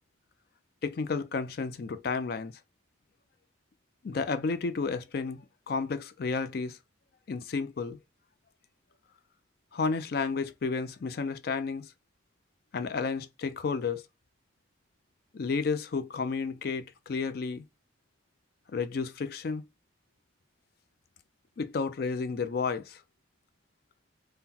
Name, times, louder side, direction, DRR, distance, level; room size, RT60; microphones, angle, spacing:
voice 1, 0.8-2.5 4.0-5.4 5.7-6.8 7.3-8.0 9.7-11.9 12.7-14.0 15.3-17.6 18.7-19.6 21.6-23.0, left 4 dB, 50° left, 0.4 m, -31 dB
3.7 x 2.1 x 2.7 m
head